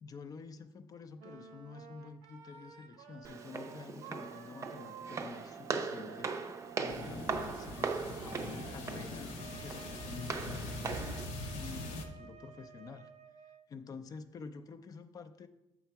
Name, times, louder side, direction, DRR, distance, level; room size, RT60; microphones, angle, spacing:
voice 1, 0.0-7.9 8.2-9.3 9.6-11.1 11.5-13.1 13.7-15.5, left 5 dB, 35° left, 11 dB, 0.5 m, -49 dB
Wind instrument woodwind instrument, 1.2-13.7, right 7 dB, 90° right, 0.7 m, -53 dB
Walk footsteps, 3.2-11.3, right 4 dB, 30° right, 0.5 m, -40 dB
sound 1, 6.9-12.0, left 2 dB, 85° left, 0.9 m, -42 dB
7.3 x 3.9 x 4.6 m, 0.96 s
cardioid pair, 130°, 11 cm